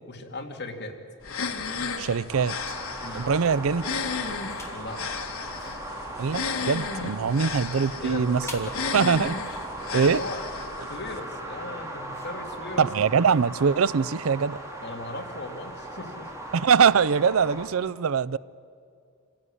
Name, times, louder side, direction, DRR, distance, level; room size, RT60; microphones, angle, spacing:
voice 1, 0.1-0.9 3.0-3.3 4.7-5.0 7.2-7.3 8.0-8.4 8.7-9.0 9.9-10.4 10.9-12.9 14.8-16.3, left 2 dB, 55° left, 2.4 m, -37 dB
sound 1, 1.2-11.2, left 5 dB, 85° left, 1.6 m, -34 dB
voice 2, 2.0-2.6 3.1-3.9 6.2-9.3 9.9-10.2 12.8-14.6 16.5-18.4, right 6 dB, 90° right, 0.5 m, -23 dB
sound 2, 2.3-17.7, right 1 dB, 15° right, 2.7 m, -38 dB
sound 3, 4.3-4.9 5.4-13.2, left 2 dB, 15° left, 2.8 m, -48 dB
27.5 x 16.0 x 9.9 m
head